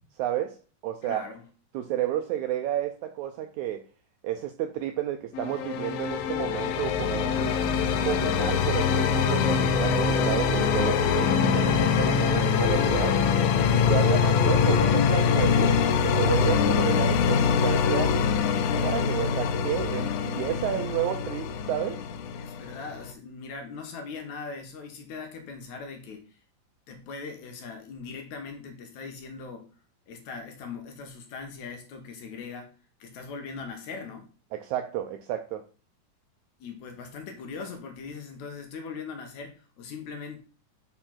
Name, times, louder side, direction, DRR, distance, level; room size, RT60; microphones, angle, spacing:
voice 1, 0.2-0.6 0.8-1.3 1.7-3.8 4.2-7.6 8.0-13.2 13.7-18.2 18.7-22.0 34.5-35.6, right 12 dB, 90° right, 5 dB, 1.7 m, -31 dB
voice 2, 1.0-1.4 22.4-26.4 26.9-29.7 30.1-32.7 33.0-34.3 36.6-40.4, left 5 dB, 70° left, 5 dB, 2.1 m, -40 dB
sound 1, 5.3-23.1, left 6 dB, 90° left, 2.4 m, -24 dB
5.9 x 4.4 x 5.7 m, 0.38 s
omnidirectional pair, 3.9 m